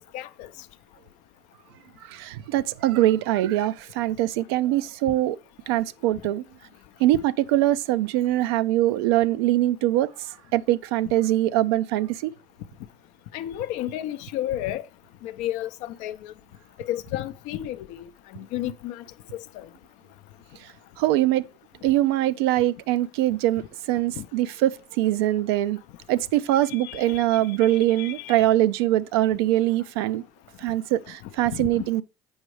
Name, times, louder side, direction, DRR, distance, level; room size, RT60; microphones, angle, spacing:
voice 1, 0.1-0.5 7.1-7.2 13.3-14.8 15.2-16.3 16.8-18.0 18.3-19.0 19.3-19.7 24.1-24.3 26.7-28.4 31.5-31.8, left 13 dB, 75° left, 0.5 m, -32 dB
voice 2, 2.0-5.4 5.7-6.4 7.0-12.3 20.6-20.7 21.0-21.5 21.8-25.8 26.1-30.2 30.6-32.0, right 14 dB, 85° right, 0.4 m, -23 dB
7.9 x 5.2 x 3.2 m
supercardioid pair, 75°, 13 cm